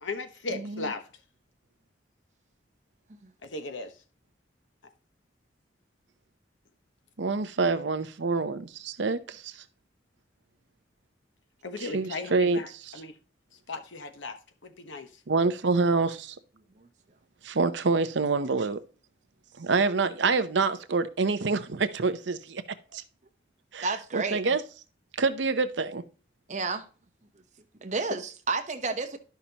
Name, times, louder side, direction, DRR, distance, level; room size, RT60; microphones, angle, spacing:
voice 1, 0.0-1.0 3.4-3.9 11.6-13.1 13.7-14.4 14.6-15.1, left 3 dB, 85° left, 1.1 m, -36 dB
voice 2, 0.5-0.9 7.2-9.5 11.8-12.6 15.3-16.4 17.4-18.8 19.6-22.6 22.9-23.0 23.7-23.9 24.1-24.6 25.1-26.0, right 4 dB, 70° right, 0.7 m, -26 dB
voice 3, 23.8-24.4 26.5-26.8 27.8-29.2, right 4 dB, 40° right, 0.9 m, -31 dB
11.0 x 5.8 x 2.9 m
head